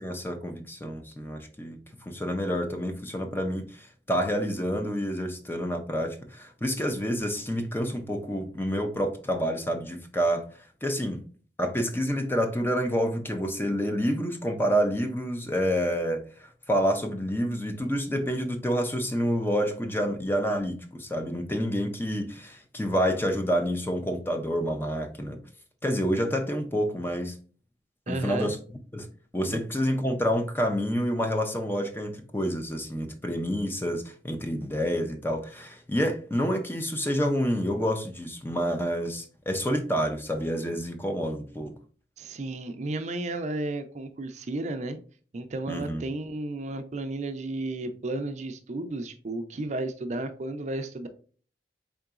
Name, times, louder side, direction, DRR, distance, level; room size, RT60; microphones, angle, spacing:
voice 1, 0.0-10.5 10.8-11.2 11.6-25.4 25.8-27.3 28.1-28.6 28.9-29.1 29.3-41.7 45.7-46.0, equal, 10° left, 0.5 m, -28 dB
voice 2, 28.1-28.5 29.5-29.6 42.2-45.0 45.3-51.1, right 2 dB, 40° right, 0.4 m, -33 dB
3.8 x 3.7 x 2.3 m
head